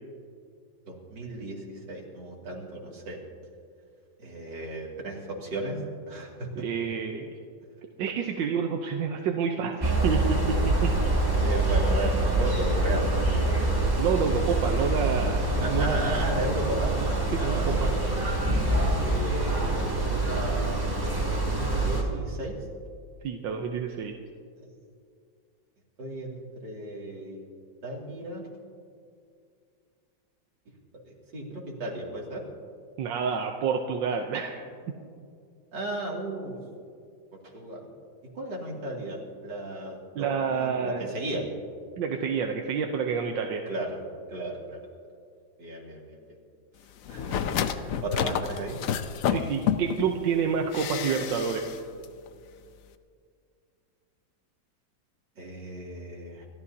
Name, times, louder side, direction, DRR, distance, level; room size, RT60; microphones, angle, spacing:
voice 1, 0.9-3.2 4.2-6.6 11.4-13.1 15.6-16.9 17.4-18.1 19.0-20.8 21.1-22.6 26.0-27.5 27.8-28.5 31.0-32.4 35.7-36.6 37.5-37.8 38.3-41.5 43.7-44.0 44.3-44.8 45.6-46.2 47.1-48.8 55.4-56.5, right 1 dB, 75° right, -2 dB, 3.1 m, -35 dB
voice 2, 6.6-7.4 8.0-11.0 13.9-16.1 17.3-17.9 23.2-24.2 33.0-34.6 40.1-41.1 42.0-43.7 49.3-51.7, right 6 dB, 90° right, 3 dB, 1.5 m, -28 dB
sound 1, 9.8-22.0, right 2 dB, 10° right, 1.9 m, -25 dB
sound 2, 47.1-50.1 50.7-51.8 52.0-52.1, left 8 dB, 65° left, 0.9 m, -29 dB
29.0 x 13.5 x 2.8 m, 2.3 s
omnidirectional pair, 2.0 m